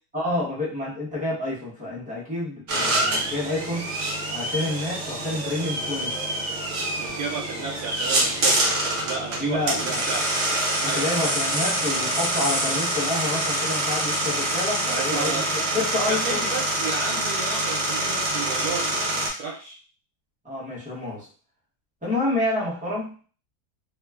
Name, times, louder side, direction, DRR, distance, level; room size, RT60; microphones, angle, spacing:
voice 1, 0.1-3.9 4.3-6.1 9.4-10.0 10.8-16.5 20.4-21.3 22.0-23.3, left 2 dB, 10° right, -6 dB, 0.5 m, -28 dB
sound 1, 2.7-19.3, right 1 dB, 55° right, 0.8 m, -26 dB
voice 2, 7.0-10.3 10.8-11.3 14.8-15.5 16.1-19.8, right 4 dB, 75° right, -3 dB, 1.1 m, -33 dB
sound 2, 9.8-15.3, left 1 dB, 65° left, 1.5 m, -33 dB
3.0 x 2.2 x 2.2 m, 0.39 s
omnidirectional pair, 1.6 m